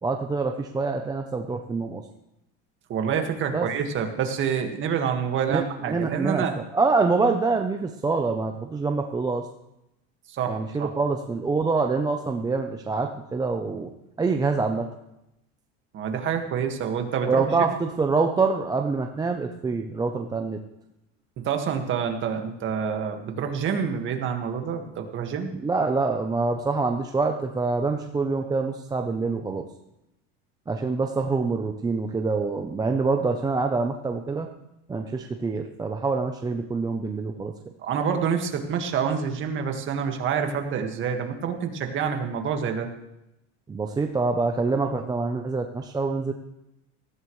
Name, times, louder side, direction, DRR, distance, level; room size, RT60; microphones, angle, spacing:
voice 1, 0.0-2.1 3.5-3.7 5.5-9.5 10.5-13.9 14.2-14.9 17.2-20.6 25.6-29.6 30.7-34.5 34.9-37.5 43.7-46.3, right 4 dB, 10° right, 4 dB, 0.6 m, -25 dB
voice 2, 2.9-6.5 10.4-10.9 15.9-17.6 21.4-25.5 37.8-42.9, right 7 dB, 35° right, 4 dB, 1.8 m, -27 dB
19.0 x 14.5 x 3.2 m, 0.88 s
cardioid pair, 145°, 33 cm